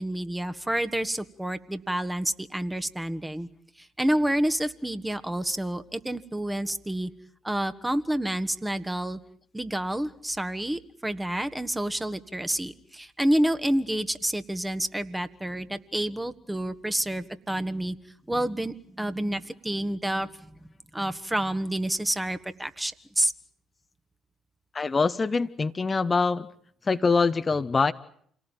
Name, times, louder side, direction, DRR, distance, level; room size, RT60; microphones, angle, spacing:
voice 1, 0.0-3.5 3.8-7.1 7.4-9.2 9.5-18.0 18.3-20.3 20.6-23.3, right 1 dB, 10° right, 11 dB, 1.6 m, -29 dB
voice 2, 24.7-26.5 26.9-27.9, left 4 dB, 30° left, 10 dB, 1.0 m, -24 dB
28.0 x 18.5 x 9.2 m, 0.65 s
hypercardioid pair, 50°, 0 cm